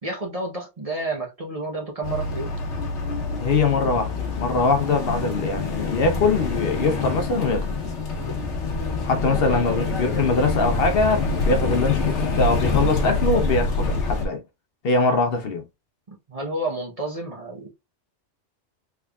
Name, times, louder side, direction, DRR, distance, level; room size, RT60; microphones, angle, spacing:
voice 1, 0.0-2.5 9.2-9.6 16.1-17.7, right 2 dB, 35° right, 0.8 m, -30 dB
sound 1, 2.0-14.2, left 3 dB, 75° left, 1.2 m, -26 dB
voice 2, 3.4-7.7 9.0-14.4 14.8-15.6, left 3 dB, 60° left, 0.8 m, -22 dB
3.5 x 3.5 x 2.2 m
omnidirectional pair, 1.2 m